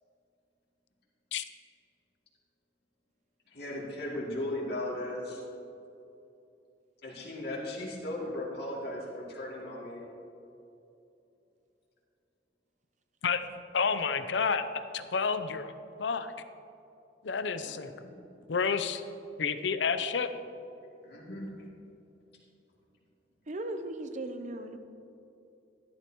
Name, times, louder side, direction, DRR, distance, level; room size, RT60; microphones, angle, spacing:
voice 1, 3.5-5.4 7.0-10.0 17.6-18.1 21.0-21.5, left 1 dB, 60° left, -5 dB, 2.6 m, -37 dB
voice 2, 13.7-15.7 16.0-16.3 17.2-17.9 18.5-19.0 19.4-20.3, left 5 dB, 75° left, 10 dB, 0.6 m, -30 dB
voice 3, 23.5-24.8, right 1 dB, 40° right, 8 dB, 0.7 m, -37 dB
14.0 x 11.5 x 3.0 m, 2.8 s
head